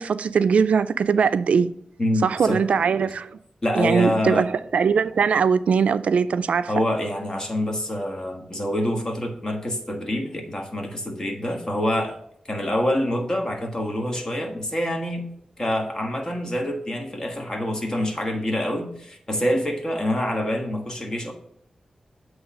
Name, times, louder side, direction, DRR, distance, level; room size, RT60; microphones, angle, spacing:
voice 1, 0.0-1.7 2.2-3.3 3.7-6.7, right 6 dB, 90° right, 0.3 m, -21 dB
voice 2, 2.0-2.6 3.0-3.1 3.6-4.5 6.7-12.2 12.5-15.2 15.6-21.3, left 1 dB, 30° left, 1.5 m, -26 dB
8.1 x 3.2 x 6.0 m
wide cardioid pair, 100°, 2 cm